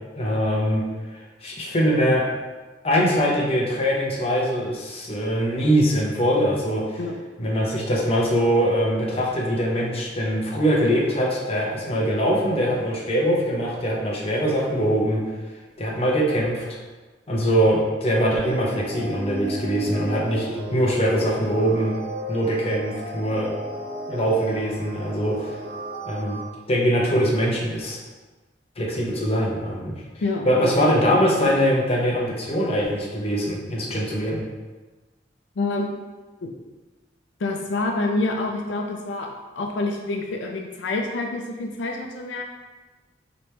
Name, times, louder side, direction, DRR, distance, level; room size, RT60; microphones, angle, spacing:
voice 1, 0.2-0.8 1.4-2.3 2.8-6.8 7.4-15.2 15.8-16.6 17.3-20.5 20.7-21.9 22.3-23.5 24.1-25.5 26.1-26.4 26.7-28.0 28.8-30.0 30.5-34.4, equal, 35° left, -3 dB, 0.8 m, -22 dB
sound 1, 18.4-26.4, right 1 dB, 60° right, 0.7 m, -34 dB
voice 2, 30.2-30.7 35.6-36.0 36.4-36.5 37.4-39.3 39.6-42.4, left 2 dB, 85° left, 2 dB, 0.5 m, -27 dB
5.1 x 3.0 x 3.2 m, 1.3 s
head